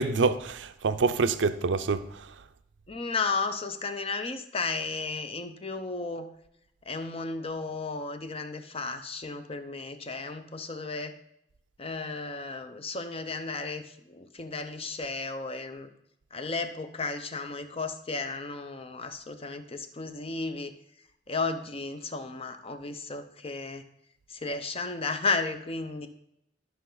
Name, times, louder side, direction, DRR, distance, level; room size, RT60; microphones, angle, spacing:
voice 1, 0.0-2.3, right 4 dB, 75° right, 0.5 m, -26 dB
voice 2, 2.9-6.3 6.8-11.1 11.8-15.9 16.3-20.7 21.3-23.8 24.3-26.1, left 3 dB, 30° left, 0.7 m, -34 dB
12.5 x 5.6 x 3.9 m
head